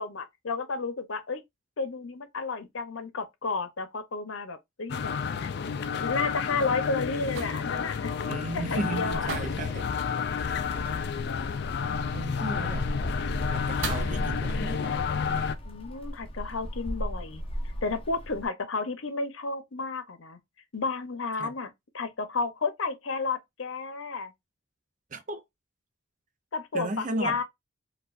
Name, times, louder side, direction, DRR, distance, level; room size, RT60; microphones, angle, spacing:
voice 1, 0.0-1.4 1.8-5.1 5.4-5.5 5.9-8.1 8.5-9.3 15.6-17.4 17.8-20.4 20.7-24.3 26.5-27.4, left 4 dB, 80° left, 0.8 m, -32 dB
sound 1, 4.9-15.5, left 6 dB, 55° left, 0.3 m, -31 dB
sound 2, 5.4-14.2, right 4 dB, 75° right, 0.8 m, -44 dB
voice 2, 8.2-9.9 12.1-12.9 13.5-15.0 21.4-21.5 25.1-25.4 26.7-27.4, right 2 dB, 40° right, 0.5 m, -34 dB
Gull seagull, 9.1-18.5, equal, 30° left, 0.8 m, -37 dB
4.4 x 2.4 x 2.5 m
head